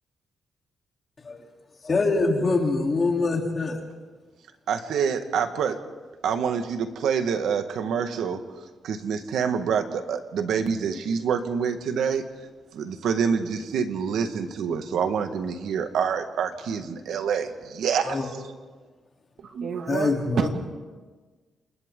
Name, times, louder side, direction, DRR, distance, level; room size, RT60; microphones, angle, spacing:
voice 1, 1.8-3.8 18.0-18.3 19.9-20.5, left 3 dB, 30° left, 3.4 m, -24 dB
voice 2, 4.7-5.8 6.2-8.4 8.8-12.2 12.7-18.2, right 6 dB, 85° right, 1.6 m, -26 dB
voice 3, 19.4-20.5, right 6 dB, 60° right, 2.1 m, -28 dB
29.5 x 27.5 x 3.8 m
wide cardioid pair, 170°, 0 cm